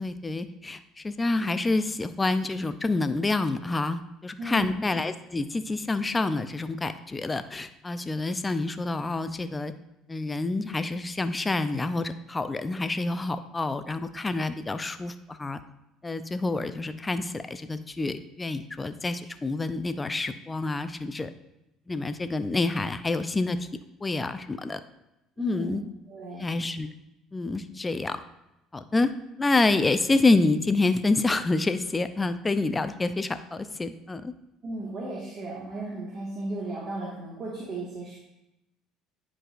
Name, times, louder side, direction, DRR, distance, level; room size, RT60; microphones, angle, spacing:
voice 1, 0.0-9.7 10.1-15.6 16.0-21.3 21.9-23.6 24.0-24.8 25.4-25.8 26.4-26.9 27.3-28.2 28.7-29.1 29.4-34.3, left 3 dB, 20° left, 11 dB, 0.5 m, -27 dB
voice 2, 4.4-4.7 25.4-25.8 26.1-26.5 34.6-38.1, right 2 dB, 45° right, -5 dB, 1.8 m, -35 dB
10.0 x 4.7 x 2.5 m, 0.90 s
supercardioid pair, 85°, 0 cm